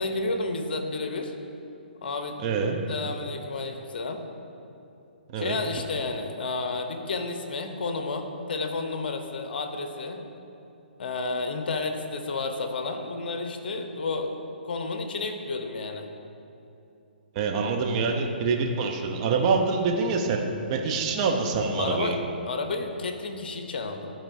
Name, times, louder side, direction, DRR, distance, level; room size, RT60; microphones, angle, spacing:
voice 1, 0.0-1.3 2.0-2.5 2.9-4.2 5.4-10.2 11.0-16.1 21.8-22.2 22.5-24.1, left 3 dB, 65° left, 5 dB, 0.7 m, -31 dB
voice 2, 2.4-2.8 5.3-5.6 17.3-20.4 20.7-22.2, right 4 dB, 35° right, 2 dB, 0.8 m, -25 dB
11.5 x 4.4 x 2.7 m, 2.8 s
hypercardioid pair, 135°, 6 cm